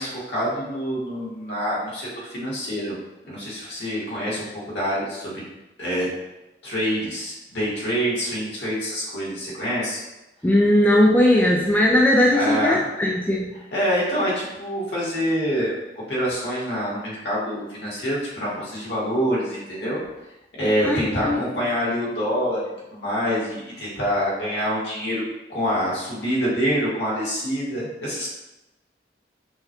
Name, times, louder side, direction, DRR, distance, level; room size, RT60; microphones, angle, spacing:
voice 1, 0.0-3.0 3.3-5.4 5.8-6.1 6.6-10.0 12.3-12.8 13.7-15.7 16.1-20.0 20.6-25.2 25.5-28.3, equal, 75° left, -6 dB, 1.5 m, -26 dB
voice 2, 10.4-13.5 20.8-21.4, left 1 dB, 10° left, -3 dB, 0.3 m, -18 dB
5.5 x 2.9 x 2.2 m, 0.96 s
head